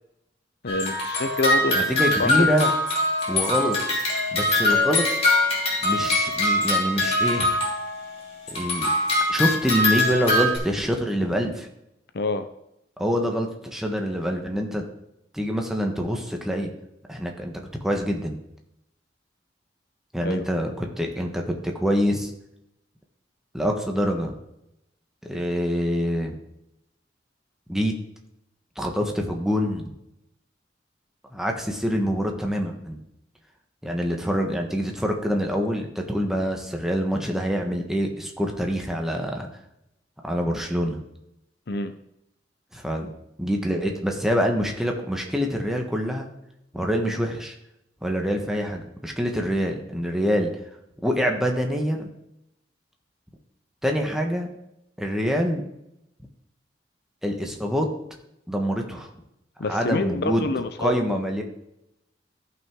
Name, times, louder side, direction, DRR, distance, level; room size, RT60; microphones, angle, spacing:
voice 1, 0.6-2.3 12.1-12.4 20.2-20.4 41.7-41.9 59.6-61.2, left 2 dB, 60° left, 9 dB, 0.6 m, -27 dB
sound 1, 0.7-8.1 8.5-10.6, left 1 dB, 35° left, 3.1 m, -23 dB
voice 2, 1.7-2.7 3.3-3.8 4.3-5.1 5.8-7.5 8.5-8.9 9.3-11.7 13.0-14.8 15.3-16.7 17.1-18.4 20.1-22.3 23.5-24.3 25.2-26.3 27.7-27.9 28.8-29.9 31.3-33.0 33.8-39.5 40.2-41.0 42.7-43.1 43.4-46.3 46.7-47.5 48.0-50.5 51.0-52.1 53.8-54.5 55.0-55.6 57.2-57.9 58.5-59.1 59.7-60.5 60.8-61.4, equal, 5° right, 1 dB, 1.3 m, -25 dB
14.5 x 5.8 x 3.7 m, 0.83 s
head